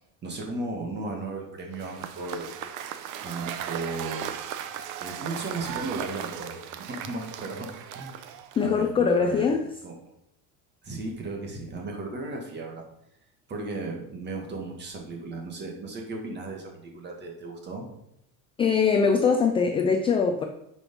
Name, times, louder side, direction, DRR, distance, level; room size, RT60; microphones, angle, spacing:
voice 1, 0.2-2.5 3.2-4.4 5.0-8.1 8.6-9.5 9.8-9.9 10.8-12.9 13.5-17.9, right 3 dB, 25° right, 1 dB, 2.0 m, -35 dB
Cheering / Applause / Crowd, 1.7-8.8, right 10 dB, 50° right, 0.8 m, -37 dB
voice 2, 8.6-9.6 18.6-20.4, left 5 dB, 15° left, 5 dB, 0.3 m, -22 dB
9.1 x 5.4 x 5.4 m, 0.79 s
cardioid pair, 155°, 41 cm